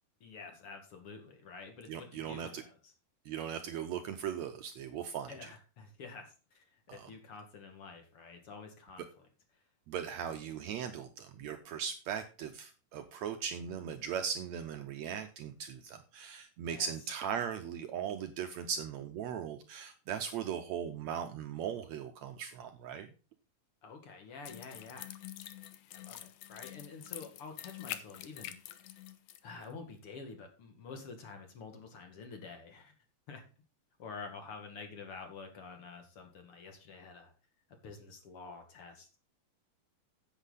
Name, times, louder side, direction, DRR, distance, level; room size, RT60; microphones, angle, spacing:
voice 1, 0.2-2.9 5.3-9.3 16.6-16.9 23.8-25.1 25.9-28.6 29.4-32.9 33.3-33.4 34.0-37.3 37.8-39.2, left 4 dB, 45° left, 5 dB, 2.4 m, -48 dB
voice 2, 1.9-2.6 3.3-5.3 6.9-7.1 9.9-23.1, right 8 dB, 80° right, 7 dB, 1.6 m, -38 dB
sound 1, 24.5-29.4 29.6-29.7, left 13 dB, 75° left, 2.2 m, -46 dB
10.5 x 8.2 x 4.1 m, 0.34 s
omnidirectional pair, 4.0 m